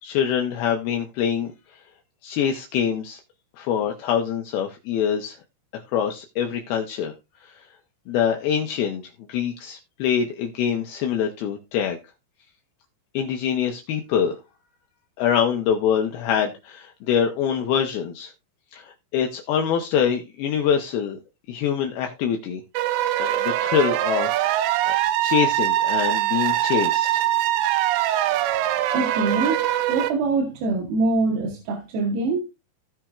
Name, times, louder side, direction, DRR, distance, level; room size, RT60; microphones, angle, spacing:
voice 1, 0.0-1.5 2.2-3.2 3.6-5.4 5.7-7.1 8.1-9.0 9.3-12.0 13.1-14.4 15.2-18.3 18.7-21.2 21.5-22.6 23.2-27.2, left 8 dB, 80° left, 2.2 m, -24 dB
sound 1, 22.7-30.1, right 13 dB, 90° right, 3.3 m, -22 dB
voice 2, 28.9-32.4, right 3 dB, 70° right, 2.8 m, -24 dB
16.5 x 5.9 x 2.4 m
omnidirectional pair, 5.5 m